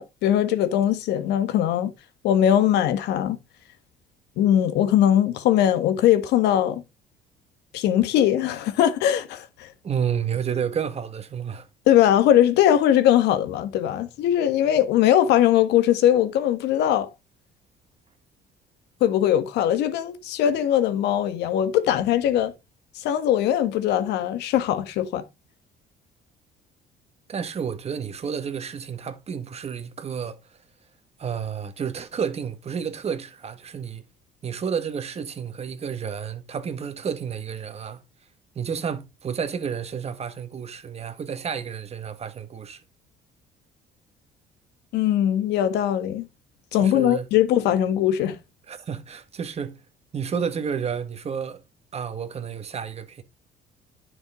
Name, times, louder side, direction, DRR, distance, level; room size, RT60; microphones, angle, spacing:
voice 1, 0.0-1.9 2.2-3.4 4.4-6.8 7.7-9.7 11.9-17.1 19.0-22.5 22.9-25.2 44.9-46.3 46.7-48.4, left 11 dB, 85° left, 1.6 m, -20 dB
voice 2, 9.8-11.7 27.3-30.4 31.2-34.0 34.4-38.0 38.5-42.8 46.8-47.3 48.7-49.8 50.1-51.6 51.9-53.2, right 7 dB, 40° right, 1.6 m, -30 dB
10.5 x 6.4 x 3.7 m
cardioid pair, 110°, 17 cm